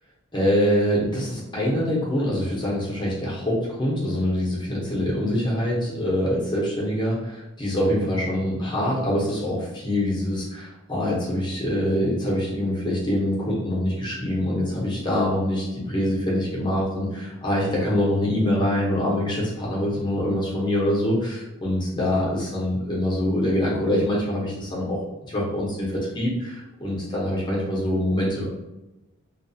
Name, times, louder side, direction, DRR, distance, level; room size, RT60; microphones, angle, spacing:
voice 1, 0.3-25.0 25.3-28.5, left 1 dB, 20° left, -5 dB, 0.7 m, -24 dB
2.3 x 2.3 x 2.6 m, 1.0 s
head